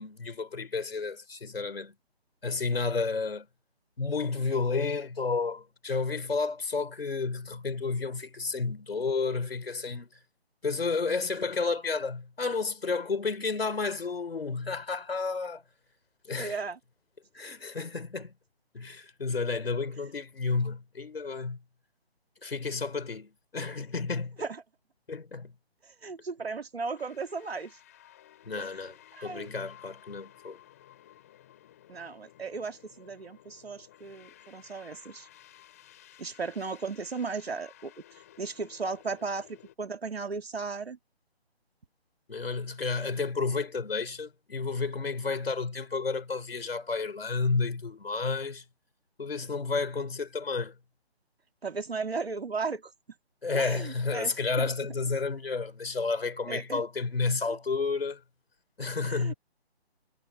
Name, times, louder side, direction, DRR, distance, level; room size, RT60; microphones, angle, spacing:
voice 1, 0.0-1.9 2.4-3.5 4.0-10.1 10.6-15.6 16.3-16.6 17.3-18.3 18.7-21.6 22.4-24.4 25.1-25.5 28.5-28.9 29.2-30.6 42.3-48.6 49.2-50.7 53.4-58.2 58.8-59.3, left 4 dB, 65° left, 4.7 m, -31 dB
voice 2, 16.4-16.8 24.4-24.6 25.8-27.8 28.5-28.7 29.1-29.5 31.9-35.3 36.2-41.0 51.6-52.9 53.5-54.7 56.5-56.8 57.5-57.6 59.0-59.3, right 4 dB, 70° right, 2.3 m, -36 dB
sound 1, 26.9-39.8, left 13 dB, 15° left, 3.5 m, -56 dB
hypercardioid pair, 175°, 32 cm